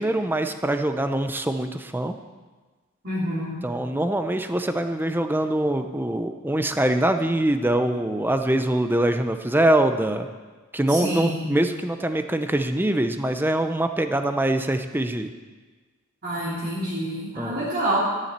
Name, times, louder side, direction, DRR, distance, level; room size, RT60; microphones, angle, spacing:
voice 1, 0.0-2.1 3.6-10.3 10.7-15.3 17.4-17.7, right 1 dB, 10° right, 7 dB, 0.7 m, -23 dB
voice 2, 3.0-3.6 10.9-11.5 16.2-18.0, right 1 dB, 45° right, -10 dB, 3.5 m, -27 dB
14.5 x 7.4 x 8.1 m, 1.3 s
head